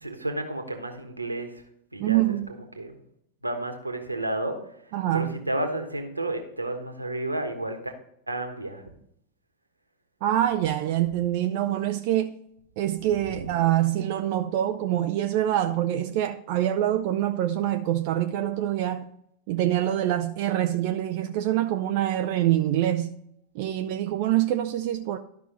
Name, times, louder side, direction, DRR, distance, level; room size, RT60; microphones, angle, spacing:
voice 1, 0.0-1.6 1.9-3.0 3.4-7.9 8.3-8.9 13.3-13.5, right 1 dB, 85° right, 1.2 m, -32 dB
voice 2, 2.0-2.5 4.9-5.3 10.2-12.4 12.8-19.1 19.5-23.2 23.5-25.2, right 12 dB, 45° right, 0.4 m, -25 dB
12.5 x 5.5 x 3.9 m
figure-of-eight pair, 90°, 0 cm